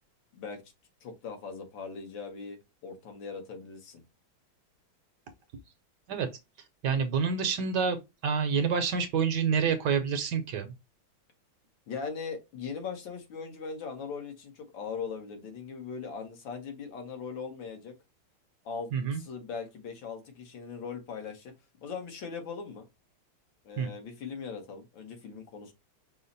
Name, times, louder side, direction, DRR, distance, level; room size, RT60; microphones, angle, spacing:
voice 1, 1.0-2.6 2.8-4.0 11.9-18.0 18.7-21.5 21.8-22.8 23.7-25.7, left 5 dB, 70° left, 1.8 m, -40 dB
voice 2, 6.8-10.7 18.9-19.2 23.8-23.9, right 6 dB, 70° right, 1.2 m, -28 dB
5.6 x 2.0 x 3.9 m
omnidirectional pair, 2.2 m